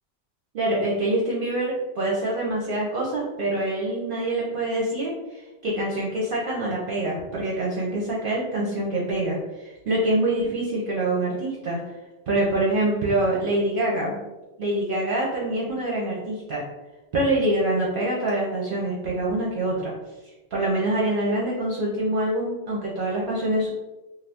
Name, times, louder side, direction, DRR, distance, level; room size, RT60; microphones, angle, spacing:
voice 1, 0.5-11.8 12.3-14.2 14.6-16.6 17.1-19.9 20.5-23.7, right 1 dB, 60° right, -4 dB, 0.7 m, -25 dB
2.5 x 2.4 x 3.3 m, 1.1 s
omnidirectional pair, 1.1 m